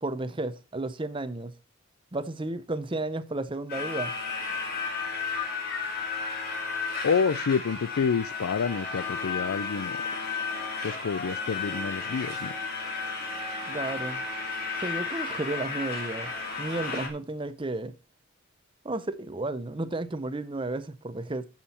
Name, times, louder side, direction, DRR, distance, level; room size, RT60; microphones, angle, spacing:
voice 1, 0.0-1.5 2.1-4.1 13.7-14.2 14.8-16.3 16.6-17.9 18.8-21.5, right 2 dB, 25° right, 0.7 m, -33 dB
sound 1, 3.7-17.1, left 4 dB, 45° left, 2.4 m, -33 dB
voice 2, 7.0-10.0 10.8-12.5, left 6 dB, 90° left, 0.5 m, -28 dB
9.9 x 7.4 x 4.3 m
head